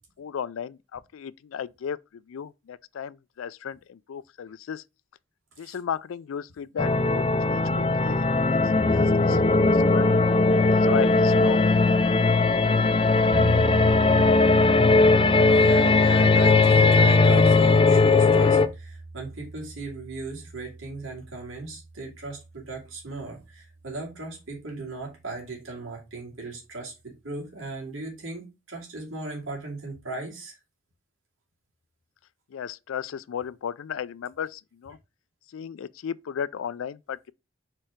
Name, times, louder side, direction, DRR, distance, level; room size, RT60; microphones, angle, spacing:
voice 1, 0.0-2.0 2.3-4.8 5.6-10.1 10.6-11.6 32.5-35.0 35.5-37.3, left 7 dB, 90° left, 0.4 m, -35 dB
sound 1, 6.8-18.7, left 3 dB, 25° left, 0.4 m, -19 dB
voice 2, 12.5-13.2 15.3-30.6, right 3 dB, 85° right, 2.5 m, -37 dB
sound 2, 13.3-23.4, right 2 dB, 60° right, 0.6 m, -36 dB
4.5 x 4.4 x 4.9 m
head